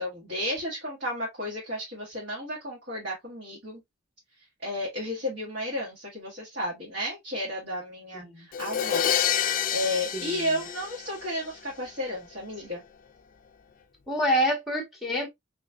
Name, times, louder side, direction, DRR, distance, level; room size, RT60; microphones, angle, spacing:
voice 1, 0.0-3.8 4.6-9.1 9.7-12.8, left 1 dB, 55° right, 1.4 m, -33 dB
voice 2, 8.1-8.5 10.1-10.5 14.1-15.3, equal, ahead, 1.0 m, -27 dB
Crash cymbal, 8.5-11.5, left 9 dB, 45° left, 0.4 m, -28 dB
3.9 x 3.0 x 2.2 m
head